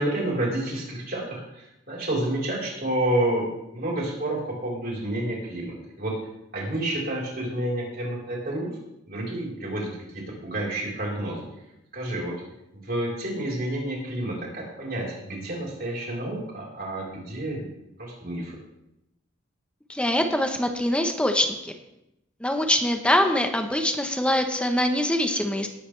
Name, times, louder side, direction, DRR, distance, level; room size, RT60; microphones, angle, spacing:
voice 1, 0.0-6.2 6.5-8.8 9.1-11.5 11.9-12.4 12.7-17.7 18.0-18.6, right 1 dB, 50° right, -4 dB, 4.3 m, -29 dB
voice 2, 19.9-21.7 22.4-25.7, left 1 dB, 5° left, 5 dB, 1.0 m, -23 dB
19.0 x 8.5 x 3.4 m, 0.87 s
head